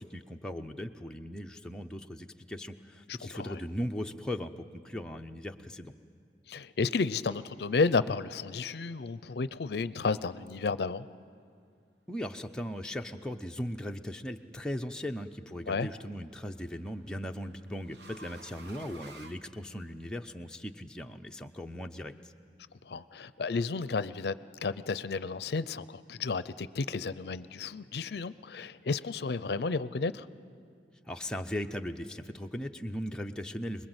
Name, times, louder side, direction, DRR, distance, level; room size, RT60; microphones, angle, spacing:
voice 1, 0.0-5.9 12.1-22.3 31.1-33.9, equal, 5° left, 3 dB, 0.6 m, -38 dB
voice 2, 3.1-3.6 6.5-11.1 15.7-15.9 22.8-24.4 24.6-30.3, left 4 dB, 65° left, 16 dB, 0.5 m, -32 dB
sound 1, 14.3-14.8 16.2-20.2, right 2 dB, 75° right, 1.2 m, -53 dB
24.5 x 21.5 x 8.0 m, 2.2 s
head